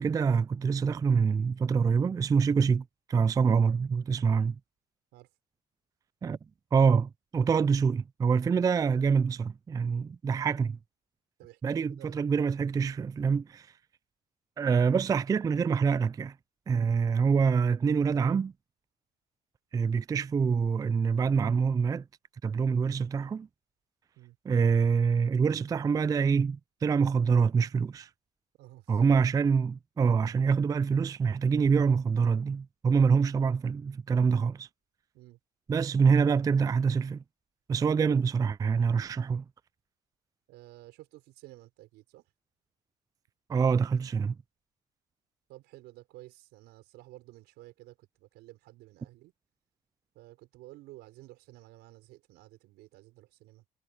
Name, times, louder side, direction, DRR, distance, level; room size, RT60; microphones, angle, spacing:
voice 1, 0.0-4.5 6.2-6.4 6.7-10.8 11.6-13.7 14.6-16.3 16.7-18.5 19.7-22.0 22.4-23.5 24.5-28.1 28.9-34.7 35.7-37.2 37.7-39.4 43.5-44.4, right 5 dB, 20° right, 0.3 m, -25 dB
voice 2, 11.4-12.2 17.2-17.4 24.2-24.4 28.6-29.0 35.1-35.4 40.5-42.2 45.5-49.3 50.2-53.7, right 18 dB, 90° right, 5.2 m, -52 dB
cardioid pair, 110°, 17 cm